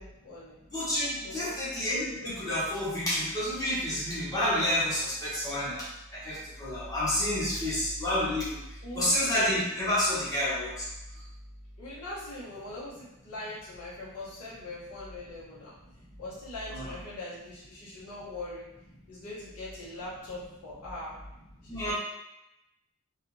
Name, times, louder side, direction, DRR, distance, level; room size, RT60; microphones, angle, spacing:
voice 1, 0.0-0.6 1.2-1.6 8.8-9.3 11.8-15.7 16.2-18.6 19.1-21.1 21.7-21.9, left 2 dB, 75° left, -9 dB, 1.0 m, -41 dB
voice 2, 0.7-5.9 6.1-8.6 8.9-10.9 16.7-16.9 21.7-21.9, left 1 dB, 15° left, -9 dB, 0.9 m, -29 dB
2.4 x 2.4 x 3.1 m, 0.91 s
head